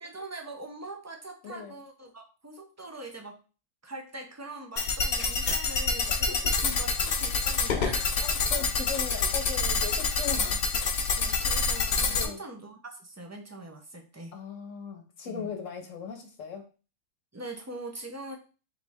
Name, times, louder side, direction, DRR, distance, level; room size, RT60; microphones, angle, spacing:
voice 1, 0.0-3.4 3.8-8.2 9.1-9.3 11.2-14.3 15.2-15.5 17.3-18.4, right 2 dB, 25° right, 3 dB, 0.3 m, -42 dB
voice 2, 1.4-1.8 6.1-6.6 8.2-10.7 12.1-12.4 14.3-16.6, left 6 dB, 75° left, 4 dB, 1.1 m, -39 dB
sound 1, 4.8-12.3, left 4 dB, 55° left, 0.8 m, -27 dB
3.9 x 3.1 x 3.5 m, 0.35 s
omnidirectional pair, 1.4 m